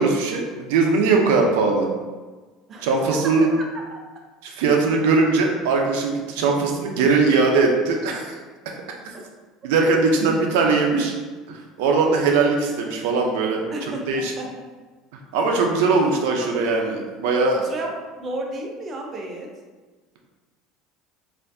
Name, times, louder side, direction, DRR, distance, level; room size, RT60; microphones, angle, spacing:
voice 1, 0.0-1.9 2.8-3.5 4.4-8.4 9.6-11.1 11.5-13.6 14.1-14.3 15.3-17.6, right 4 dB, 85° right, 2 dB, 0.6 m, -20 dB
voice 2, 2.7-3.4 3.7-3.8 13.7-14.7 17.6-19.5, right 1 dB, 30° right, 1 dB, 0.6 m, -33 dB
4.2 x 2.6 x 2.7 m, 1.3 s
cardioid pair, 145°, 0 cm